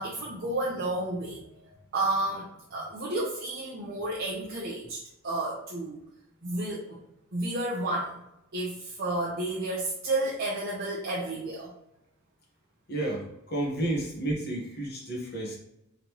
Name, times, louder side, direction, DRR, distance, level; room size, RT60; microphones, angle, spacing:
voice 1, 0.0-6.0 6.4-7.0 7.3-8.2 8.5-11.7, right 2 dB, 50° right, -6 dB, 0.8 m, -31 dB
voice 2, 12.9-15.6, right 1 dB, 50° left, -2 dB, 1.3 m, -31 dB
3.8 x 3.4 x 3.0 m, 0.81 s
head